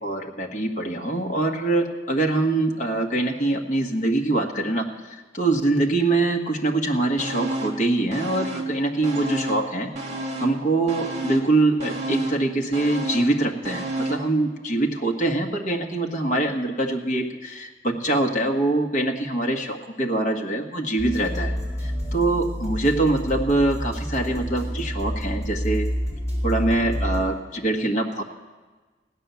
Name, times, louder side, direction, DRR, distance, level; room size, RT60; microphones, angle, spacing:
voice 1, 0.0-9.9 10.4-21.5 21.8-25.9 26.4-28.2, right 2 dB, 45° left, 1 dB, 1.5 m, -24 dB
sound 1, 7.2-7.8 8.1-9.7 10.0-14.3 14.7-14.8, right 2 dB, 40° right, 2.0 m, -31 dB
sound 2, 21.0-27.2, equal, 20° left, 5.0 m, -28 dB
16.5 x 10.5 x 7.0 m, 1.3 s
head